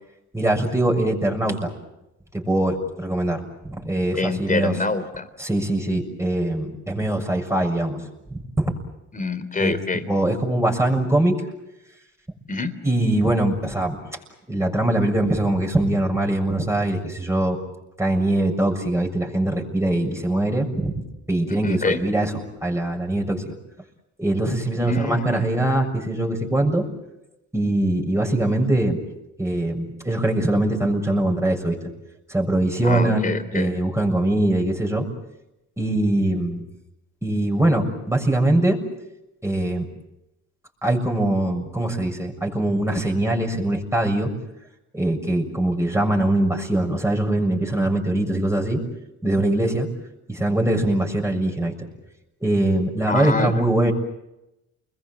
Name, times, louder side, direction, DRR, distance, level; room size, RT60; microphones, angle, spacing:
voice 1, 0.3-1.7 2.3-4.8 5.4-8.0 8.3-8.7 9.6-9.7 10.1-11.4 12.8-14.0 14.5-17.6 18.0-21.0 21.3-23.5 24.2-26.9 27.5-29.0 29.4-31.9 32.3-35.1 35.8-36.6 37.2-38.8 39.4-39.9 40.8-44.3 44.9-48.8 49.2-49.9 50.3-51.9 52.4-53.9, right 1 dB, 10° right, 1 dB, 6.7 m, -22 dB
voice 2, 4.2-5.3 9.1-10.1 12.5-12.7 21.6-22.0 24.8-25.4 32.8-33.7 53.0-53.5, left 3 dB, 25° left, 10 dB, 3.6 m, -25 dB
30.0 x 22.0 x 7.7 m, 0.91 s
cardioid pair, 90°, 30 cm